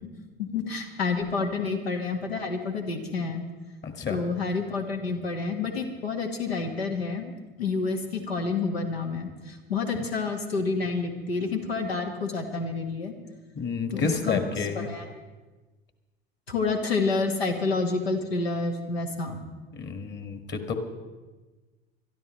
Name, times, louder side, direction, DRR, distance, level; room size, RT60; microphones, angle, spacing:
voice 1, 0.4-3.5 4.1-7.3 7.6-13.1 13.9-14.4 14.8-15.0 16.5-19.4, left 4 dB, 85° left, 4 dB, 1.7 m, -29 dB
voice 2, 3.8-4.2 13.6-14.9 19.7-20.7, left 5 dB, 35° left, 6 dB, 1.9 m, -30 dB
24.0 x 13.0 x 3.2 m, 1.2 s
hypercardioid pair, 75°, 30 cm